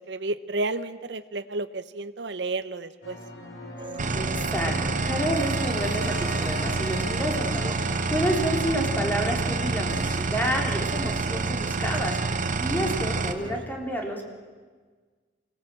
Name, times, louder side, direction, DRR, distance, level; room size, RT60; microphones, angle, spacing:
voice 1, 0.1-3.2, right 2 dB, 80° right, 13 dB, 0.9 m, -31 dB
sound 1, 3.0-10.2, left 1 dB, 80° left, 4.3 m, -39 dB
sound 2, 3.8-13.6, right 3 dB, 30° right, 1.1 m, -44 dB
sound 3, 4.0-13.3, right 3 dB, 50° right, 1.2 m, -27 dB
voice 2, 4.1-14.3, equal, 10° left, 1 dB, 3.3 m, -30 dB
24.5 x 18.5 x 7.6 m, 1.5 s
head